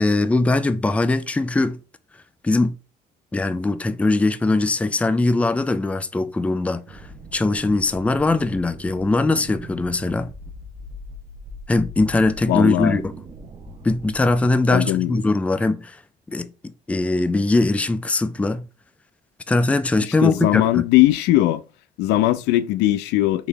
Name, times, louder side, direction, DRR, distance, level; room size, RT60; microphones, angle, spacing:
voice 1, 0.0-1.8 2.4-2.7 3.3-10.3 11.7-13.1 13.8-16.0 16.3-16.5 16.9-18.6 19.5-20.8, left 2 dB, 10° left, 0.3 m, -21 dB
sound 1, 6.9-14.5, equal, 35° right, 0.7 m, -40 dB
voice 2, 12.5-13.0 14.7-15.2 20.2-21.6 22.0-23.5, left 15 dB, 90° left, 0.4 m, -19 dB
4.0 x 3.1 x 3.4 m
cardioid pair, 110°, 17 cm